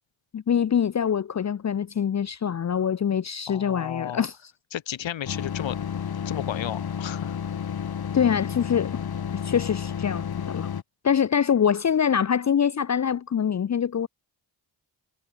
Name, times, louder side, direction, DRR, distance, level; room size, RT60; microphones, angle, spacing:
voice 1, 0.3-4.3 8.1-9.0 9.4-10.7 11.0-14.1, left 8 dB, 35° left, 0.8 m, -24 dB
voice 2, 3.5-4.3 4.7-5.8 6.3-7.4, left 11 dB, 75° left, 4.0 m, -33 dB
sound 1, 5.2-10.8, left 8 dB, 55° left, 2.5 m, -31 dB
cardioid pair, 85°, 45 cm